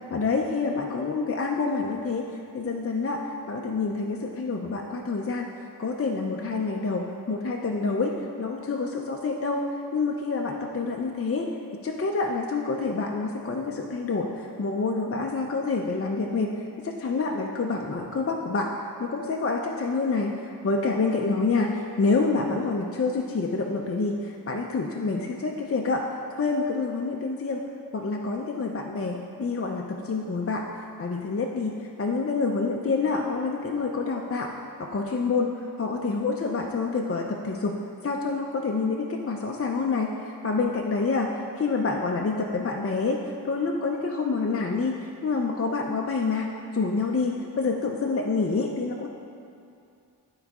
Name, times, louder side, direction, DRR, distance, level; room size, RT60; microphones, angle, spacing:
voice 1, 0.1-2.3 2.5-3.2 3.5-5.5 5.8-9.6 9.9-11.5 11.8-16.5 16.8-18.7 19.0-27.6 27.9-30.6 31.0-34.5 34.8-37.8 38.0-41.3 41.6-49.1, left 4 dB, 35° left, 0 dB, 0.5 m, -27 dB
8.8 x 4.0 x 4.7 m, 2.5 s
cardioid pair, 55°, 39 cm